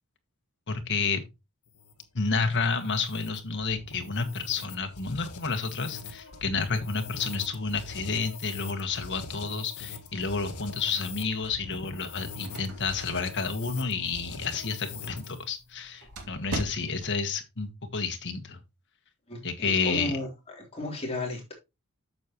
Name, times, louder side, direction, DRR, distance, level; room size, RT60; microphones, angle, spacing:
voice 1, 0.7-1.2 2.1-18.6 19.4-20.1, left 4 dB, 55° left, 1.5 m, -30 dB
sound 1, 1.7-15.5, left 4 dB, 80° left, 1.4 m, -43 dB
sound 2, 12.0-17.2, right 2 dB, 80° right, 2.4 m, -42 dB
voice 2, 19.3-20.3 20.5-21.5, left 2 dB, 30° left, 3.3 m, -34 dB
8.8 x 7.1 x 3.0 m
head